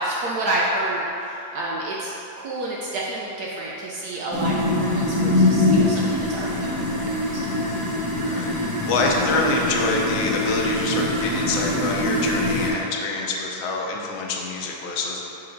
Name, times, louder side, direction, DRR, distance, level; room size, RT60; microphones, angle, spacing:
voice 1, 0.0-2.1 2.4-6.8 7.4-7.5, right 1 dB, 70° right, -5 dB, 1.0 m, -29 dB
sound 1, 4.3-12.7, left 1 dB, 15° right, 0.7 m, -23 dB
voice 2, 8.2-8.5 8.9-15.3, left 3 dB, 85° left, -1 dB, 1.6 m, -26 dB
6.1 x 4.4 x 3.8 m, 3.0 s
omnidirectional pair, 2.2 m